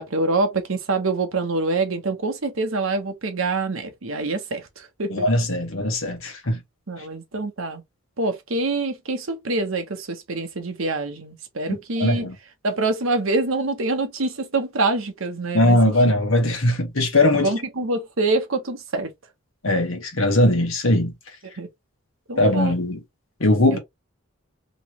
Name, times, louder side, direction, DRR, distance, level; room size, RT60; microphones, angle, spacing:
voice 1, 0.0-5.2 6.9-7.8 8.2-12.3 12.6-16.2 17.3-19.1 21.6-21.7 22.3-22.7 23.7-23.8, right 3 dB, 75° right, 0.9 m, -25 dB
voice 2, 5.1-6.6 12.0-12.3 15.5-17.5 19.6-21.1 22.4-23.0 23.4-23.8, left 1 dB, 70° left, 1.3 m, -20 dB
3.1 x 2.9 x 2.9 m
head